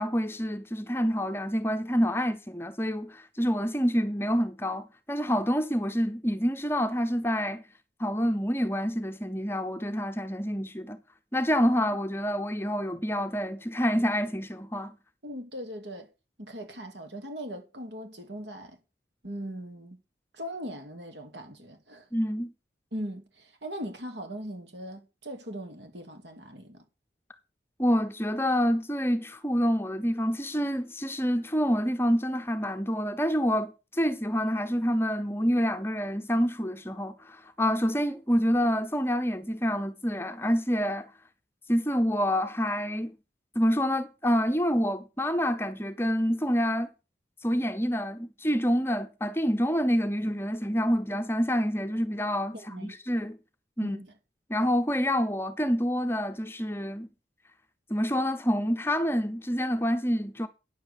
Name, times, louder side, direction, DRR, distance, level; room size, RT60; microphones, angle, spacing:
voice 1, 0.0-7.6 8.0-11.0 11.3-14.9 22.1-22.5 27.8-41.1 41.7-43.1 43.5-46.9 47.4-53.4 53.8-54.0 54.5-57.1 57.9-60.5, equal, 15° left, 0.8 m, -27 dB
voice 2, 15.2-16.1 16.4-18.8 19.2-20.0 20.3-22.1 22.9-26.8 52.5-53.0 53.8-54.2, equal, 70° right, 2.6 m, -39 dB
9.9 x 7.7 x 6.8 m
head